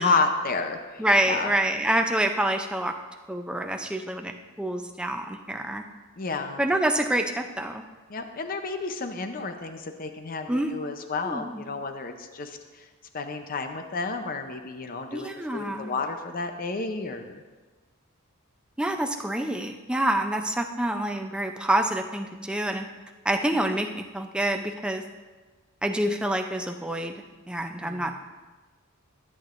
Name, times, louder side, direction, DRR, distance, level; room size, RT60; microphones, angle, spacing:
voice 1, 0.0-1.5 6.2-6.6 8.1-12.8 13.1-17.4 27.8-28.1, left 4 dB, 40° left, 6 dB, 0.6 m, -31 dB
voice 2, 1.0-2.9 3.3-5.8 6.6-7.8 10.5-10.7 11.2-11.6 15.1-15.9 18.8-22.9 23.2-25.0 25.8-27.1 27.5-28.2, right 1 dB, 5° right, 4 dB, 0.5 m, -27 dB
13.5 x 8.6 x 2.5 m, 1.3 s
head